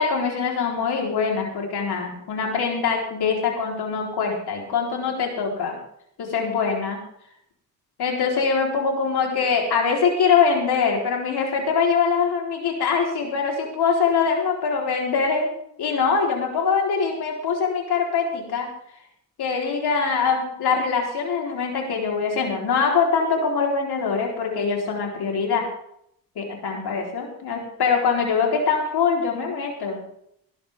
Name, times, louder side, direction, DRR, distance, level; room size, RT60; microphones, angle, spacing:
voice 1, 0.0-5.8 6.2-7.0 8.0-15.5 15.8-18.7 19.4-25.7 26.4-30.0, left 5 dB, 75° left, 0 dB, 4.1 m, -23 dB
19.5 x 11.5 x 3.7 m, 0.72 s
cardioid pair, 85°, 39 cm